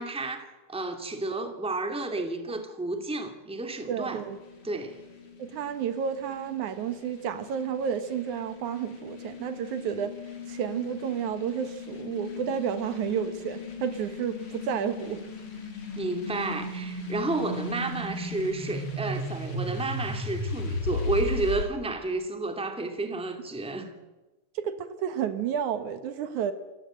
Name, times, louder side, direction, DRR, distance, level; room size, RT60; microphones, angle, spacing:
voice 1, 0.0-4.2 4.6-5.0 15.9-23.9, right 2 dB, ahead, 2.0 m, -31 dB
sound 1, 3.8-21.6, left 2 dB, 45° left, 3.7 m, -36 dB
voice 2, 3.9-4.4 5.4-10.1 10.5-15.2 24.6-26.5, right 8 dB, 75° right, 2.7 m, -31 dB
28.5 x 14.0 x 9.1 m
omnidirectional pair, 3.5 m